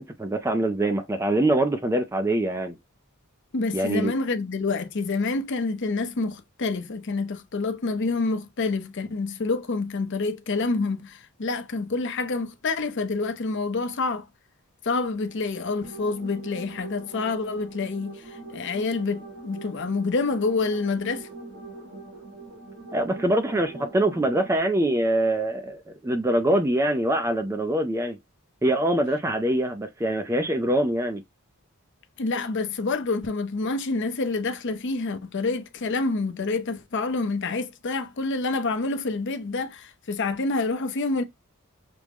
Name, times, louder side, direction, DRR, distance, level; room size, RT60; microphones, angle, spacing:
voice 1, 0.0-2.7 3.7-4.1 22.9-28.2 28.6-31.2, right 1 dB, 10° right, 0.3 m, -24 dB
voice 2, 3.5-14.2 14.8-21.3 32.2-41.2, left 3 dB, 55° left, 0.6 m, -27 dB
sound 1, 15.1-24.6, right 3 dB, 60° right, 1.1 m, -43 dB
5.9 x 2.1 x 3.4 m
head